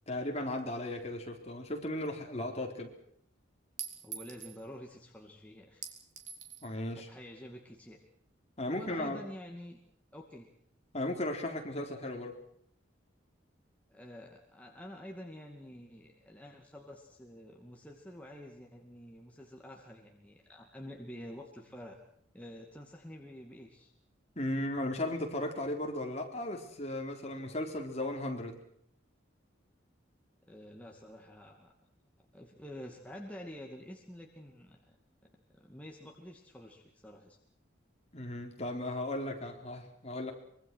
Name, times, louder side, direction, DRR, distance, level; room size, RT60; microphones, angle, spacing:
voice 1, 0.1-2.9 6.6-7.1 8.6-9.2 10.9-12.3 24.4-28.6 38.1-40.3, left 1 dB, 35° left, 2 dB, 4.1 m, -36 dB
Chink clink, 2.0-2.1 3.8-4.6 5.8-6.7, right 8 dB, 40° right, 3.5 m, -44 dB
voice 2, 4.0-5.8 7.0-8.0 8.7-9.8 10.1-10.5 13.9-22.0 22.3-23.9 30.5-31.7 32.2-35.0 35.5-37.4, equal, 5° left, 0 dB, 2.3 m, -48 dB
25.0 x 23.5 x 6.3 m, 0.68 s
head